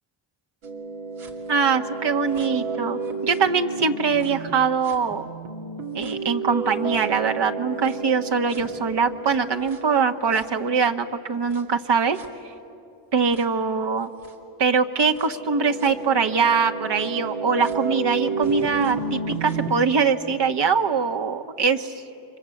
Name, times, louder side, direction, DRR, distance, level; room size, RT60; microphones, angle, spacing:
sound 1, 0.6-4.5 4.8-11.0 11.5-11.6 12.2-12.3 13.3-13.4 14.2-14.3 15.2-19.7, right 4 dB, 85° right, 2.6 m, -31 dB
voice 1, 1.5-5.3 5.9-12.2 13.1-14.1 14.6-21.9, right 5 dB, 60° right, 6 dB, 1.6 m, -22 dB
29.0 x 25.0 x 8.0 m, 2.7 s
cardioid pair, 70°, 46 cm